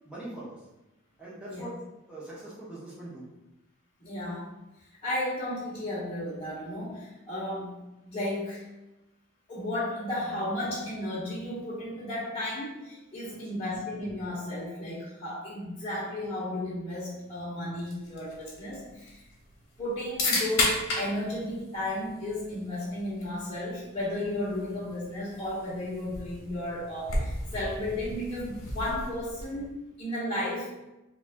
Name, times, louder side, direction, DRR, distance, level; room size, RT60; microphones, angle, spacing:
voice 1, 0.0-0.6 1.2-1.8 2.1-3.3 13.3-13.6, right 1 dB, 5° right, -9 dB, 1.0 m, -42 dB
voice 2, 4.0-4.4 5.0-7.7 8.0-8.6 9.5-19.2 19.8-30.7, left 1 dB, 25° left, -10 dB, 1.0 m, -34 dB
sound 1, 17.8-29.7, left 2 dB, 65° left, 1.1 m, -35 dB
3.4 x 2.5 x 3.5 m, 1.0 s
head